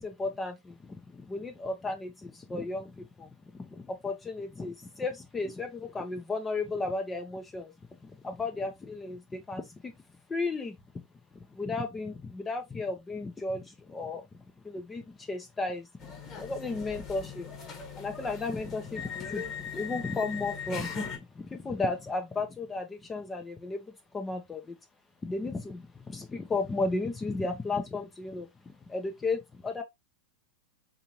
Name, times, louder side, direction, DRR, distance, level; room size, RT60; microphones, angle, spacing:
voice 1, 0.0-7.7 8.0-10.0 10.3-10.8 11.5-14.3 14.6-15.9 16.4-17.5 18.0-24.8 25.2-29.8, left 3 dB, 15° left, 0.5 m, -34 dB
sound 1, 16.0-21.2, left 6 dB, 40° left, 1.2 m, -39 dB
3.9 x 2.8 x 2.8 m
hypercardioid pair, 100°, 0 cm